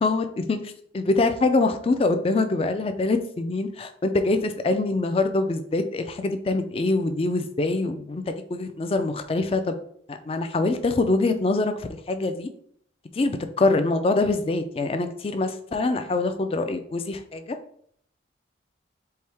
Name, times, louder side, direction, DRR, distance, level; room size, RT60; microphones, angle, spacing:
voice 1, 0.0-9.8 10.1-11.7 12.1-12.5 13.1-17.4, left 2 dB, 30° left, 8 dB, 0.3 m, -24 dB
4.5 x 2.7 x 3.4 m, 0.63 s
head